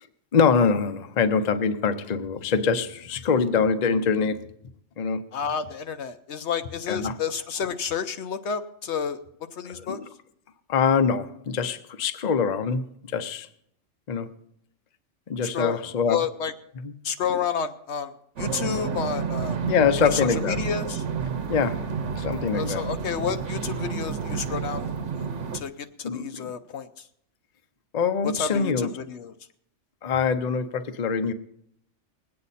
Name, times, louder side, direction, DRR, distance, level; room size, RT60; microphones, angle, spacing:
voice 1, 0.3-4.5 5.0-5.2 6.9-7.2 9.9-10.0 10.7-12.9 13.1-13.5 14.1-14.3 15.3-16.2 16.8-16.9 19.6-20.6 21.5-21.8 22.2-22.8 26.0-26.5 27.9-28.9 30.0-31.3, left 6 dB, 40° left, 9 dB, 0.7 m, -24 dB
voice 2, 5.3-9.2 9.5-10.0 15.4-16.5 17.0-18.1 18.4-19.6 20.0-21.0 22.5-24.8 25.1-25.7 26.0-27.1 28.2-29.3, left 7 dB, 70° left, 8 dB, 0.9 m, -30 dB
sound 1, 18.4-25.6, right 6 dB, 75° right, 1.2 m, -30 dB
21.0 x 8.6 x 4.1 m, 0.71 s
omnidirectional pair, 1.3 m